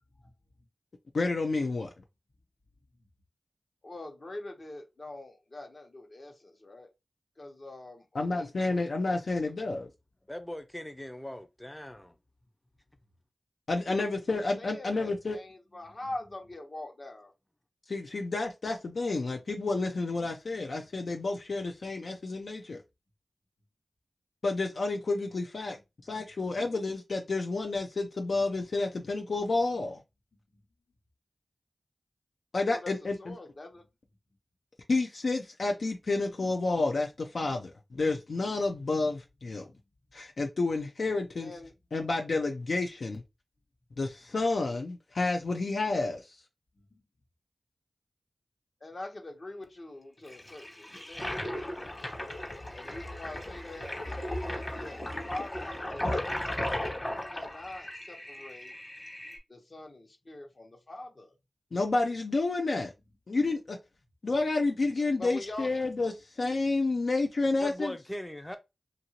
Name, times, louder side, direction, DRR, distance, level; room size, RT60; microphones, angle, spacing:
voice 1, 1.1-1.9 8.1-9.9 13.7-15.4 17.9-22.8 24.4-30.0 32.5-33.3 34.9-39.6 40.1-41.5 41.9-43.2 44.0-46.4 61.7-62.9 63.3-63.8 64.2-68.0, left 3 dB, 75° left, 0.4 m, -30 dB
voice 2, 3.8-6.9 7.4-8.8 9.2-9.4 13.8-17.3 25.7-25.8 32.8-32.9 33.2-33.9 41.3-41.7 46.8-47.0 48.8-52.1 52.7-58.8 59.5-61.3 65.2-65.7, left 2 dB, 55° left, 1.0 m, -44 dB
voice 3, 10.3-12.2 67.6-68.6, equal, 15° left, 0.5 m, -40 dB
Toilet flush, 50.3-59.4, left 1 dB, 35° left, 1.2 m, -36 dB
2.8 x 2.5 x 2.8 m
cardioid pair, 40°, 0 cm